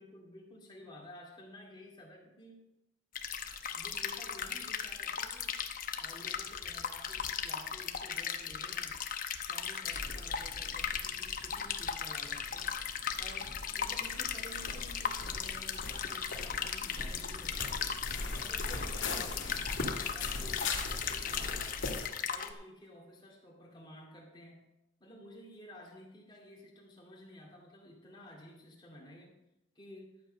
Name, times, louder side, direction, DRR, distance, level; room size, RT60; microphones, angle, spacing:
voice 1, 0.0-2.7 3.7-5.6 6.0-9.1 9.5-12.7 13.2-17.8 18.3-19.8 20.1-21.7 22.3-24.7 25.0-29.4 29.7-30.2, left 1 dB, 25° left, -1 dB, 2.4 m, -53 dB
sound 1, 3.2-22.5, left 7 dB, 45° left, 0.8 m, -37 dB
sound 2, 9.9-22.1, left 3 dB, 75° left, 1.9 m, -41 dB
12.0 x 7.8 x 5.2 m, 0.89 s
head